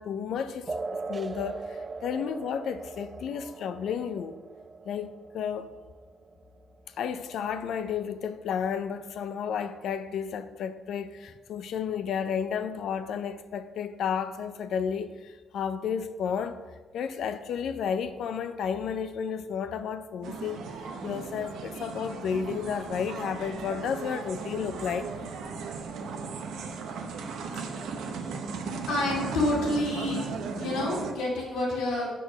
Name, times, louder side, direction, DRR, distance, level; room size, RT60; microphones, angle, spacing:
voice 1, 0.0-4.4 4.8-5.1 5.3-5.7 7.0-16.6 16.9-25.1 27.5-27.6, left 7 dB, 70° left, 0.5 m, -32 dB
sound 1, 0.7-7.7, right 3 dB, 30° right, 0.4 m, -40 dB
voice 2, 3.3-3.6 28.9-30.3 30.6-32.1, left 2 dB, 90° left, 2.2 m, -29 dB
sound 2, 20.2-31.1, right 5 dB, 80° right, 0.8 m, -36 dB
6.6 x 4.6 x 5.9 m
cardioid pair, 90°, 0 cm